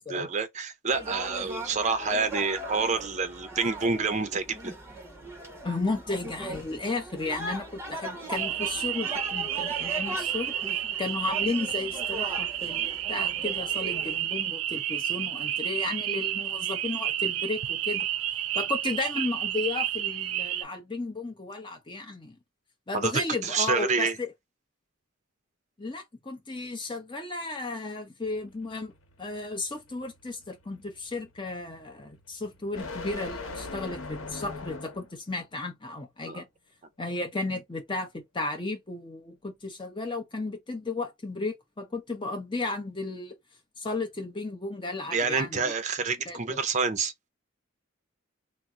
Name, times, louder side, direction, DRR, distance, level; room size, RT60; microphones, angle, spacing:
voice 1, 0.0-4.7 22.9-23.1 23.4-24.2 36.3-36.4 45.1-47.1, right 4 dB, 35° right, 0.5 m, -28 dB
sound 1, 0.9-14.2, right 1 dB, 10° right, 1.0 m, -39 dB
voice 2, 5.6-18.1 18.5-22.3 22.9-24.3 25.8-28.9 29.2-36.5 37.0-43.4 43.8-45.7 46.3-46.6, left 3 dB, 25° left, 0.8 m, -34 dB
sound 2, 8.4-20.6, right 11 dB, 90° right, 0.4 m, -30 dB
sound 3, 28.2-35.2, left 3 dB, 80° left, 0.9 m, -41 dB
2.8 x 2.0 x 3.6 m
head